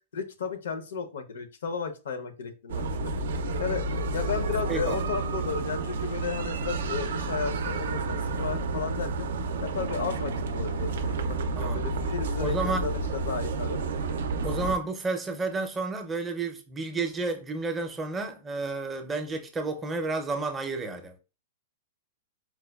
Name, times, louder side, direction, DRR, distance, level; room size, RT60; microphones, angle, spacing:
voice 1, 0.1-2.9 3.6-3.8 4.1-9.3 9.6-13.8, left 6 dB, 85° left, 0.6 m, -34 dB
sound 1, 2.7-14.8, right 3 dB, 80° right, 0.4 m, -30 dB
voice 2, 4.7-5.0 11.6-11.8 12.4-12.9 14.4-21.2, right 3 dB, 15° right, 0.4 m, -31 dB
4.5 x 2.1 x 2.3 m
hypercardioid pair, 145°, 0 cm